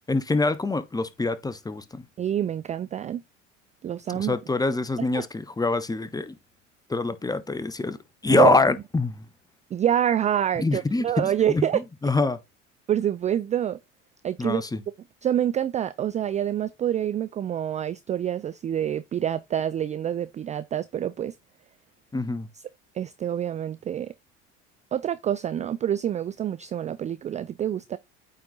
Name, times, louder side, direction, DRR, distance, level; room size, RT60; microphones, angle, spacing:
voice 1, 0.0-2.0 4.1-6.3 6.9-8.0 8.2-9.2 10.6-12.4 14.4-14.8 22.1-22.5, left 3 dB, 10° left, 0.9 m, -25 dB
voice 2, 2.2-3.2 3.8-4.3 5.0-5.3 8.3-8.5 9.7-11.8 12.9-13.8 14.2-14.6 15.2-21.3 22.9-24.1 24.9-28.0, right 10 dB, 20° right, 0.3 m, -27 dB
8.8 x 4.1 x 3.8 m
hypercardioid pair, 70°, 38 cm